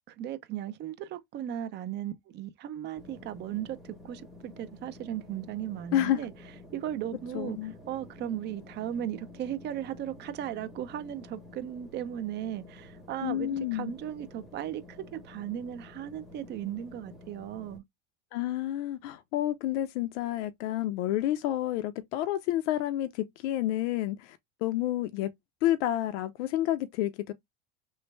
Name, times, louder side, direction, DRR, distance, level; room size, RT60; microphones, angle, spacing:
voice 1, 0.1-6.3 6.7-7.6 7.9-17.8, right 11 dB, 30° right, 0.4 m, -36 dB
sound 1, 3.0-17.8, left 2 dB, ahead, 0.7 m, -50 dB
voice 2, 7.3-7.7 13.2-13.9 18.3-25.3 25.6-27.3, left 13 dB, 75° left, 0.5 m, -29 dB
3.1 x 2.1 x 3.1 m
supercardioid pair, 115°, 35 cm